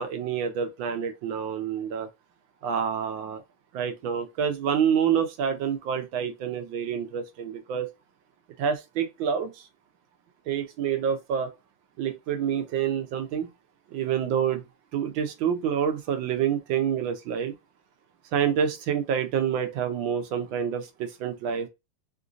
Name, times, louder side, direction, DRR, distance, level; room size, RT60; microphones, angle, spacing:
voice 1, 0.0-2.1 2.6-3.4 3.7-7.9 8.6-9.5 10.5-11.5 12.0-13.5 13.9-14.6 14.9-17.5 18.3-21.7, right 8 dB, 70° right, 1.2 m, -27 dB
3.7 x 2.5 x 2.4 m
omnidirectional pair, 2.4 m